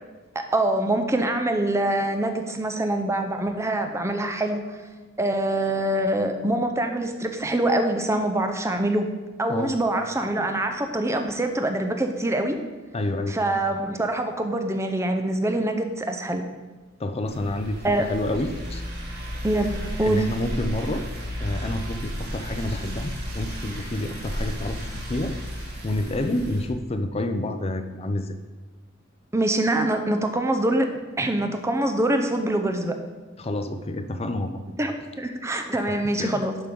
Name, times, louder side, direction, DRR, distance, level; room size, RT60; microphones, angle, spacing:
voice 1, 0.3-4.8 5.2-9.1 9.4-12.6 13.3-16.4 17.8-18.1 19.4-20.3 29.3-30.9 31.2-33.0 34.8-36.6, right 1 dB, 15° right, 6 dB, 0.6 m, -24 dB
voice 2, 12.9-13.4 17.0-18.8 20.0-21.0 21.4-25.3 25.8-28.4 33.4-34.6 35.7-36.5, left 1 dB, 30° left, 7 dB, 0.5 m, -29 dB
sound 1, 17.3-26.7, equal, 60° right, 2.1 m, -33 dB
11.0 x 3.8 x 5.3 m, 1.3 s
head